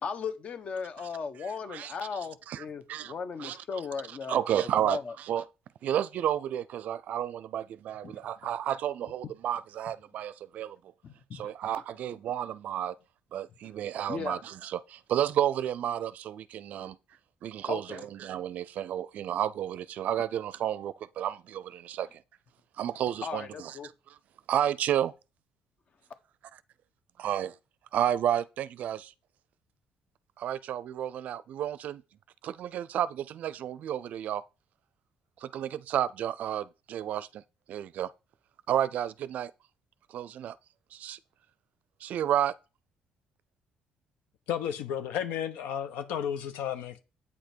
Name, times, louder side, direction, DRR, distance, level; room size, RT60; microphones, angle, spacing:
voice 1, 0.0-5.1 8.0-8.1 9.2-9.3 11.0-11.5 13.6-14.4 16.8-16.9 17.7-18.1 23.2-23.9, left 5 dB, 50° left, 1.2 m, -37 dB
voice 2, 4.3-5.4 5.8-10.8 11.3-13.0 13.3-17.0 17.4-22.2 22.8-23.7 24.5-25.1 27.2-27.5 27.9-29.1 30.4-32.0 32.4-34.4 35.4-37.4 37.7-38.1 38.7-39.5 40.1-40.6 40.9-41.2 42.0-42.5, right 10 dB, 65° right, 0.4 m, -31 dB
voice 3, 44.5-47.0, left 9 dB, 90° left, 1.0 m, -33 dB
8.6 x 5.1 x 4.5 m
cardioid pair, 90°, 3 cm